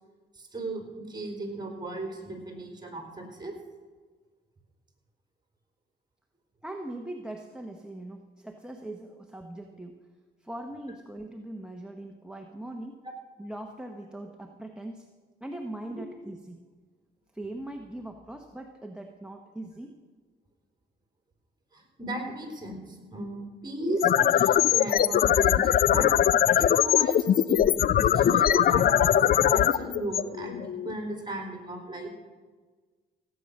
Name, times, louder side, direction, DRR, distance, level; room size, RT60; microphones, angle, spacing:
voice 1, 0.3-3.5 13.0-13.1 15.9-16.0 21.7-26.1 26.6-32.1, right 1 dB, 20° right, 2 dB, 3.9 m, -36 dB
voice 2, 6.6-10.0 10.4-13.0 13.4-15.1 15.4-16.6 17.3-20.0, right 1 dB, 5° right, 5 dB, 1.0 m, -40 dB
sound 1, 23.8-30.9, left 10 dB, 50° left, 0.5 m, -22 dB
17.0 x 8.5 x 6.5 m, 1.4 s
cardioid pair, 90°, 20 cm